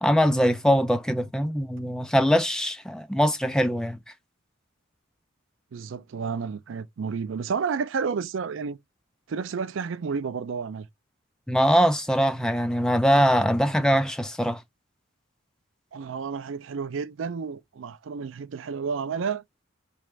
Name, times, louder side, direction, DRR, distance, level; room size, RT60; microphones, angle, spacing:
voice 1, 0.0-4.0 11.5-14.6, equal, 5° left, 0.4 m, -22 dB
voice 2, 5.7-8.8 9.3-10.9 15.9-19.4, right 5 dB, 65° right, 0.4 m, -31 dB
3.1 x 2.5 x 4.4 m
head